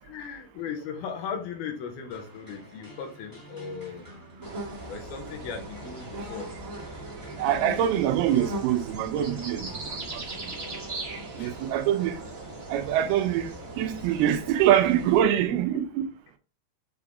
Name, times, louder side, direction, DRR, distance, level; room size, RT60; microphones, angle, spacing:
voice 1, 0.0-4.1 4.9-6.5 10.2-10.4 11.4-11.5 15.5-15.6, left 6 dB, 75° left, 2.8 m, -37 dB
sound 1, 2.1-10.5, equal, 5° left, 1.9 m, -48 dB
sound 2, 4.4-15.2, right 2 dB, 30° right, 1.8 m, -38 dB
voice 2, 7.4-10.2 11.4-12.2 12.7-15.8, right 11 dB, 80° right, 2.4 m, -24 dB
7.0 x 4.7 x 3.6 m
omnidirectional pair, 4.7 m